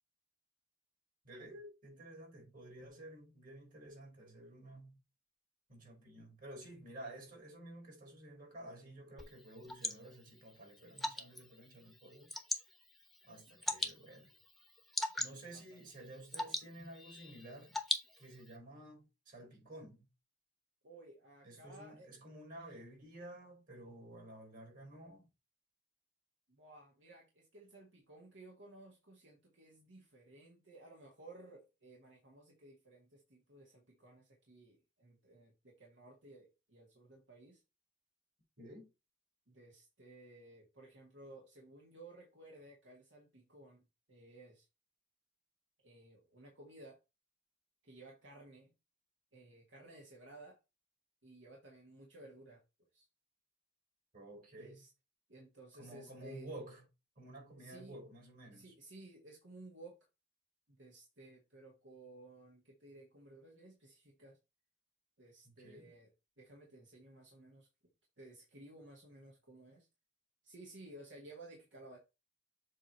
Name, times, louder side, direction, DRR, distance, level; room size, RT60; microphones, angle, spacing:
voice 1, 1.2-5.0 5.7-12.3 13.3-14.3 15.2-17.8 18.2-20.1 21.4-25.3 38.6-38.9 54.1-54.8 55.8-56.8 57.2-58.7 65.6-65.9, right 1 dB, 50° right, 4.2 m, -52 dB
Water / Drip, 9.2-18.6, left 1 dB, ahead, 1.0 m, -42 dB
voice 2, 20.8-22.1 26.5-37.6 39.5-43.8 44.1-44.7 45.8-47.0 47.8-48.7 49.3-50.6 51.2-52.6 52.9-53.1 54.6-54.9 55.3-56.6 57.6-58.0 58.5-60.0 60.7-64.4 65.2-66.1 66.4-67.7 68.2-69.9 70.4-72.0, right 2 dB, 75° right, 1.7 m, -56 dB
7.5 x 3.0 x 5.4 m
head